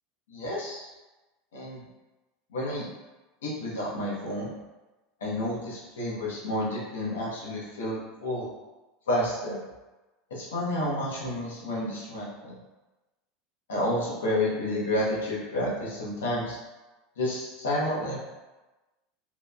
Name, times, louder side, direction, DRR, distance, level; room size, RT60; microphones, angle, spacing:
voice 1, 0.3-0.9 1.5-1.8 2.5-2.9 3.4-4.5 5.2-8.5 9.1-9.6 10.3-12.6 13.7-16.6 17.2-18.2, left 1 dB, 90° left, -6 dB, 0.7 m, -30 dB
2.8 x 2.0 x 2.3 m, 1.1 s
hypercardioid pair, 100°, 0 cm